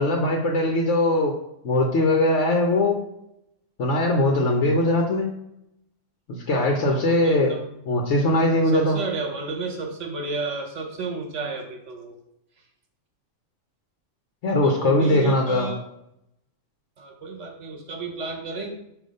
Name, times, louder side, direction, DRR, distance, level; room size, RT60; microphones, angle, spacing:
voice 1, 0.0-1.3 1.6-3.0 3.8-5.3 6.3-7.5 7.9-9.0 14.4-15.7, left 1 dB, 65° left, 1 dB, 1.1 m, -21 dB
voice 2, 6.9-7.7 8.7-12.1 14.6-15.9 17.0-18.7, right 3 dB, 65° right, 2 dB, 1.4 m, -31 dB
6.5 x 2.8 x 5.2 m, 0.80 s
omnidirectional pair, 1.3 m